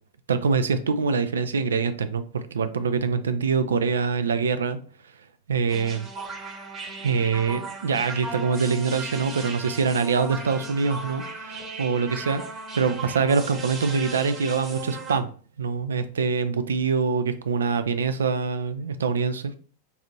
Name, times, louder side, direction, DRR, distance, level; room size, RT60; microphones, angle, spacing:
voice 1, 0.3-4.8 5.5-6.1 7.0-12.4 12.7-15.3 15.6-19.6, right 5 dB, 65° right, 11 dB, 0.3 m, -24 dB
sound 1, 5.7-15.2, right 3 dB, 25° right, 0.9 m, -37 dB
4.0 x 2.5 x 2.7 m, 0.42 s
figure-of-eight pair, 90°, 0 cm